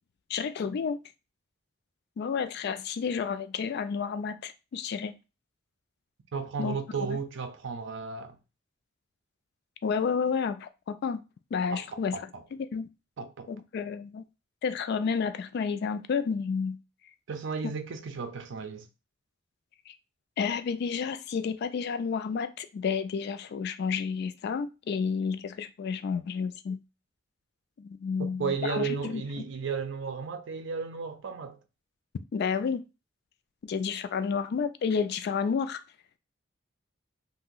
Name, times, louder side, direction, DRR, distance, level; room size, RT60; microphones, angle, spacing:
voice 1, 0.3-1.0 2.2-5.2 6.6-6.8 7.1-7.2 9.8-11.2 11.5-12.2 12.7-12.9 13.5-14.2 14.6-16.8 19.9-20.0 20.4-26.8 27.8-29.2 32.3-32.8 33.6-35.8, left 6 dB, 55° left, 0.3 m, -30 dB
voice 2, 6.3-8.4 11.7-12.4 13.2-13.5 17.3-18.9 28.2-31.6, right 5 dB, 70° right, 0.5 m, -34 dB
2.6 x 2.1 x 3.7 m
head